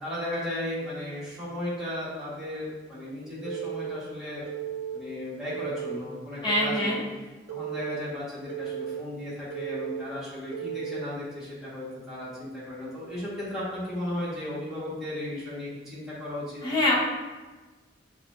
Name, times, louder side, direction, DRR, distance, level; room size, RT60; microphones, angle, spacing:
voice 1, 0.0-4.5 4.9-6.9 7.5-16.6, left 1 dB, 5° right, -10 dB, 1.4 m, -35 dB
Telephone, 3.4-4.0 4.5-5.0 5.5-6.0 6.5-7.0 7.5-8.0 8.5-9.0 9.5-10.0 10.5-11.0, right 11 dB, 60° right, 0.7 m, -34 dB
voice 2, 6.4-7.0 16.6-17.0, left 1 dB, 25° left, -4 dB, 0.9 m, -24 dB
6.0 x 2.4 x 2.5 m, 1.3 s
head